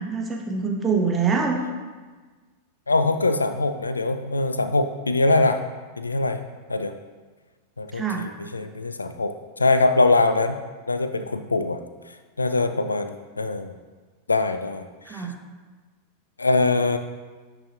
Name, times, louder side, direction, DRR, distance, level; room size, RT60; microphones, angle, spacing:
voice 1, 0.1-1.6 7.9-8.2 15.1-15.3, right 5 dB, 20° right, 1 dB, 0.9 m, -24 dB
voice 2, 2.9-5.6 6.0-6.4 6.7-6.9 7.8-10.6 10.9-11.8 12.4-13.8 14.3-15.3 16.4-17.0, left 2 dB, 80° left, 9 dB, 0.3 m, -23 dB
10.0 x 3.9 x 2.8 m, 1.4 s
figure-of-eight pair, 90°, 0 cm